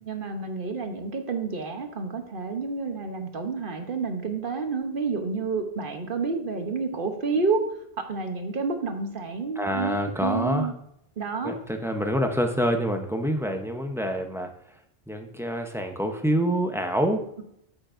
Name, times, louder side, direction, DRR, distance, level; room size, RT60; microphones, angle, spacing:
voice 1, 0.0-7.6 8.0-10.7 11.2-11.5, right 4 dB, 60° right, 6 dB, 1.1 m, -29 dB
voice 2, 9.6-10.7 11.4-14.5 15.1-17.3, equal, 5° right, 4 dB, 0.7 m, -26 dB
8.7 x 7.8 x 2.6 m, 0.75 s
omnidirectional pair, 1.0 m